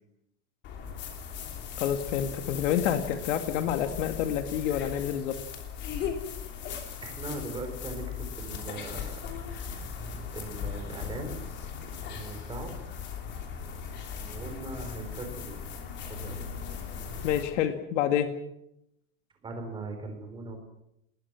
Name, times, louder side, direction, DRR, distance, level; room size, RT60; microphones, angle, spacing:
sound 1, 0.6-17.4, left 7 dB, 25° left, 3.1 m, -38 dB
voice 1, 1.8-5.4 17.2-18.3, left 10 dB, 55° left, 7 dB, 2.3 m, -28 dB
voice 2, 7.0-9.2 10.3-11.4 12.1-12.7 14.1-15.6 16.1-16.4 19.4-20.6, right 2 dB, 10° right, 4 dB, 3.9 m, -39 dB
29.5 x 20.5 x 6.1 m, 0.80 s
supercardioid pair, 180°, 44 cm